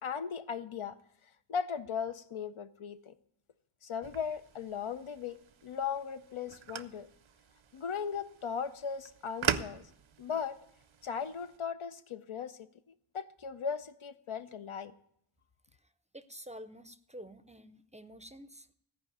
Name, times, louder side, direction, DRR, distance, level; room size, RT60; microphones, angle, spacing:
voice 1, 0.0-1.0 1.5-3.1 3.8-7.1 7.7-9.9 10.2-10.6 11.0-12.6 13.1-14.9, left 6 dB, 80° left, 0.7 m, -37 dB
sound 1, 4.0-11.6, right 8 dB, 70° right, 0.6 m, -41 dB
voice 2, 15.8-18.7, equal, 15° right, 0.5 m, -49 dB
14.5 x 4.9 x 9.2 m
wide cardioid pair, 50°, 49 cm